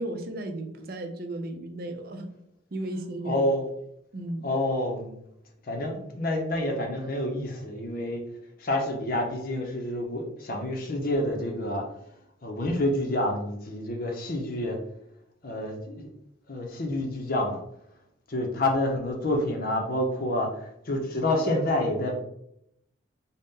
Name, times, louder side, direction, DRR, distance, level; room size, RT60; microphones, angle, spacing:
voice 1, 0.0-2.3 2.7-3.5 4.1-4.5, right 1 dB, 50° right, 5 dB, 0.5 m, -34 dB
voice 2, 3.2-3.6 4.4-5.2 5.7-8.3 8.6-11.9 12.4-14.8 15.4-16.1 16.5-17.6 18.3-22.2, left 1 dB, 50° left, 2 dB, 0.6 m, -28 dB
4.0 x 2.1 x 3.6 m, 0.77 s
head